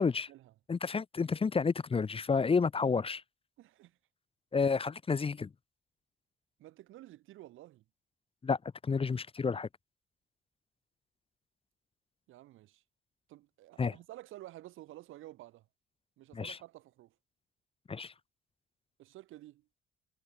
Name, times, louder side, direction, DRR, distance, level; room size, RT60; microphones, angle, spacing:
voice 1, 0.0-0.5 3.6-4.0 6.6-7.8 12.3-12.8 13.3-15.7 16.2-17.1 19.0-19.7, right 15 dB, 90° right, 4.5 m, -52 dB
voice 2, 0.7-3.2 4.5-5.5 8.4-9.7 13.8-13.9 16.3-16.6 17.9-18.1, left 5 dB, 30° left, 0.8 m, -30 dB
cardioid pair, 90°, 20 cm